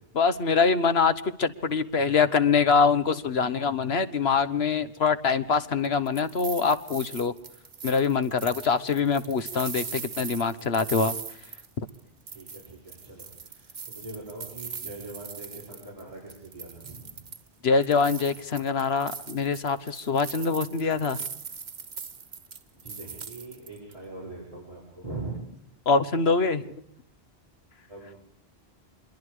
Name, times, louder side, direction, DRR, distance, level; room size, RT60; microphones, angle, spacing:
voice 1, 0.1-7.3 7.8-11.2 17.6-21.2 25.8-26.7, left 5 dB, 75° left, 12 dB, 1.5 m, -24 dB
sound 1, 5.8-12.0 12.3-16.0 16.3-17.5 17.8-23.9, right 6 dB, 85° right, 1.6 m, -40 dB
voice 2, 12.3-17.2 22.8-25.4 27.9-28.2, right 2 dB, 35° right, -4 dB, 6.9 m, -41 dB
25.5 x 22.5 x 5.0 m, 0.69 s
omnidirectional pair, 1.1 m